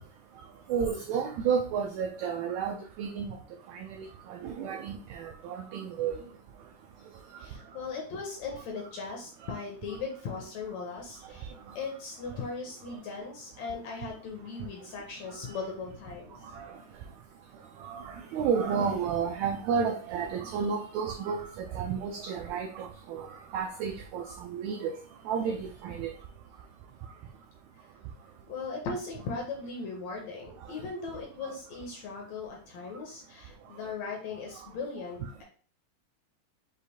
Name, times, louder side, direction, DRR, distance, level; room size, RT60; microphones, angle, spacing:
voice 1, 0.7-3.4 3.7-6.2 16.5-16.6 17.8-21.5 21.7-23.3 23.5-25.0 25.3-26.1, right 6 dB, 85° right, 3 dB, 1.6 m, -31 dB
voice 2, 7.4-16.4 28.5-35.4, left 4 dB, 70° left, 0 dB, 1.7 m, -38 dB
6.4 x 2.5 x 2.7 m, 0.43 s
omnidirectional pair, 3.8 m